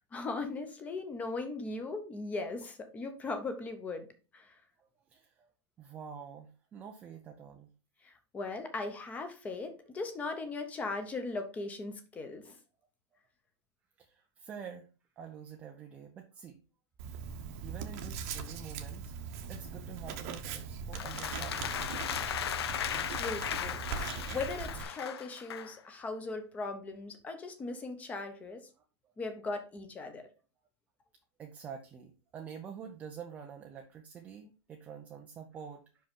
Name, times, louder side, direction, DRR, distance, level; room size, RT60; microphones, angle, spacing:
voice 1, 0.1-4.1 4.3-4.5 8.0-12.6 23.1-28.6 29.2-30.2, left 3 dB, 10° left, 7 dB, 0.8 m, -38 dB
voice 2, 5.1-5.5 5.8-7.7 14.0-14.9 15.2-16.6 17.6-22.2 31.4-35.8, right 7 dB, 10° right, 3 dB, 0.4 m, -47 dB
Writing, 17.0-24.8, right 6 dB, 30° right, 0.9 m, -40 dB
sound 1, 20.9-25.8, left 9 dB, 60° left, 0.7 m, -36 dB
5.6 x 5.3 x 5.2 m, 0.33 s
hypercardioid pair, 170°, 15 cm